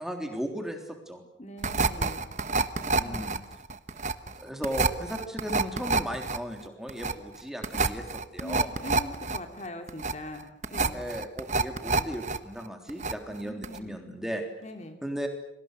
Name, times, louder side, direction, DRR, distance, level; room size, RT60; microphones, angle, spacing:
voice 1, 0.0-1.2 3.0-3.4 4.4-8.7 10.9-14.5 15.0-15.3, equal, 5° right, 3 dB, 3.5 m, -36 dB
voice 2, 1.4-2.2 2.9-3.3 8.4-11.0 13.4-14.0 14.6-15.0, left 1 dB, 40° left, 5 dB, 2.7 m, -41 dB
sound 1, 1.6-12.4 12.7-13.4 13.6-13.8, right 3 dB, 40° right, 1.2 m, -28 dB
30.0 x 24.0 x 6.7 m, 0.76 s
head